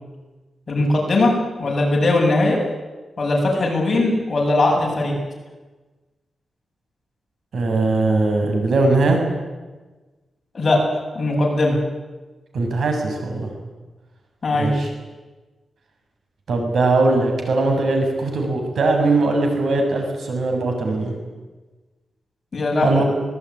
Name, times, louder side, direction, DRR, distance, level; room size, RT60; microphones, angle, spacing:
voice 1, 0.7-1.3 1.6-2.6 3.2-5.2 10.5-10.8 11.1-11.8 14.4-14.7 22.5-23.0, left 2 dB, 40° left, -1 dB, 7.8 m, -19 dB
voice 2, 7.5-9.2 12.5-13.5 14.6-14.9 16.5-21.1 22.8-23.0, right 3 dB, 70° right, 3 dB, 7.0 m, -20 dB
24.0 x 19.5 x 9.9 m, 1.3 s
wide cardioid pair, 130°, 0 cm